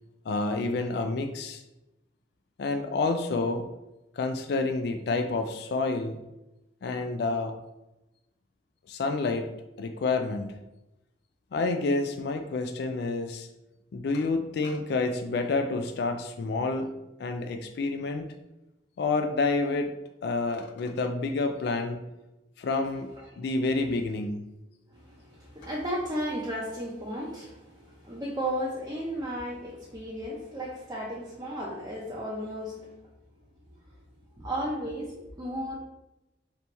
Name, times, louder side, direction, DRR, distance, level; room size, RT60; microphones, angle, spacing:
voice 1, 0.3-1.6 2.6-3.7 4.2-6.2 6.8-7.5 8.9-9.5 9.8-10.5 11.5-13.5 13.9-16.9 17.2-18.3 19.0-19.9 20.2-22.0 22.6-23.1 23.4-24.4, left 3 dB, 65° left, 6 dB, 0.3 m, -28 dB
voice 2, 24.9-32.8 34.4-35.1 35.4-35.8, equal, 20° right, -5 dB, 0.6 m, -34 dB
3.4 x 2.9 x 3.9 m, 0.95 s
head